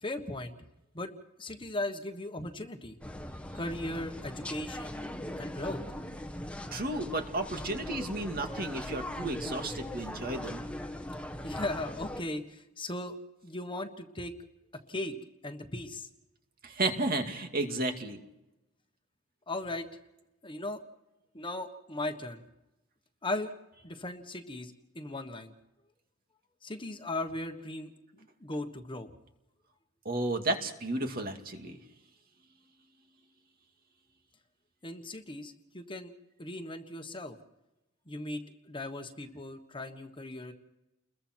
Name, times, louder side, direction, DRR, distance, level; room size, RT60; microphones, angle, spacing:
voice 1, 0.0-0.5 0.9-1.1 1.4-3.0 3.5-5.8 11.4-13.1 13.4-14.3 14.9-15.1 15.4-16.1 19.5-19.9 20.4-20.8 21.3-22.4 23.2-23.5 23.8-25.5 26.6-27.9 28.4-29.1 34.8-36.1 36.4-37.4 38.1-40.5, left 1 dB, 25° left, 6 dB, 1.4 m, -37 dB
sound 1, 3.0-12.2, left 1 dB, 5° left, 1.3 m, -40 dB
voice 2, 6.7-10.6 16.6-18.2 30.0-31.8, right 2 dB, 45° right, 4 dB, 2.4 m, -33 dB
30.0 x 22.0 x 4.6 m, 0.95 s
head